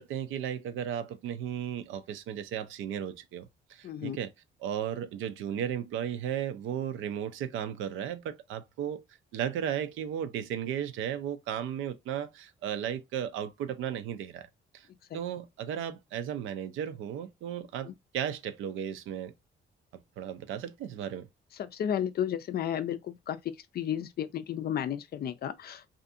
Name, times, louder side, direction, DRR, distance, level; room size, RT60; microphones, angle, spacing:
voice 1, 0.0-4.3 4.6-9.0 9.3-14.5 14.7-14.9 15.1-19.3 20.2-21.3, right 9 dB, 85° right, 0.4 m, -35 dB
voice 2, 3.8-4.2 15.1-15.2 17.8-18.0 21.6-25.9, left 9 dB, 50° left, 0.4 m, -33 dB
2.6 x 2.5 x 2.5 m
cardioid pair, 90°, 20 cm